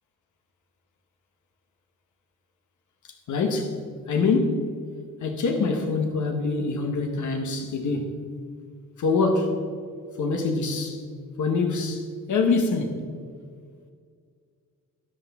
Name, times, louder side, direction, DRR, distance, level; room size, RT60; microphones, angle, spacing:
voice 1, 3.3-3.8 4.1-4.7 5.2-8.2 9.0-9.6 10.2-11.0 11.4-13.0, left 4 dB, 65° left, 1.1 m, -25 dB
13.0 x 10.5 x 3.5 m
wide cardioid pair, 160°, 33 cm